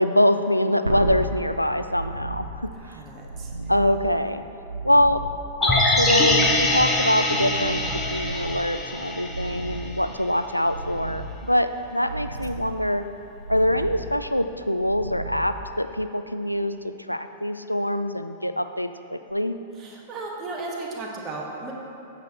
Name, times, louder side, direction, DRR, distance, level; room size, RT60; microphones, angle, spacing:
voice 1, 0.0-2.7 3.7-4.4 4.8-5.2 5.6-13.1 13.5-19.6, left 1 dB, 90° left, 10 dB, 0.3 m, -24 dB
sound 1, 0.8-16.1 19.3-19.4, right 2 dB, 85° right, 0.6 m, -35 dB
voice 2, 2.7-3.7 19.7-21.7, right 3 dB, 25° right, -2 dB, 1.3 m, -35 dB
sound 2, 5.6-9.8 10.1-10.2, left 2 dB, 15° left, 0.8 m, -23 dB
8.7 x 6.2 x 4.1 m, 2.7 s
figure-of-eight pair, 100°, 0 cm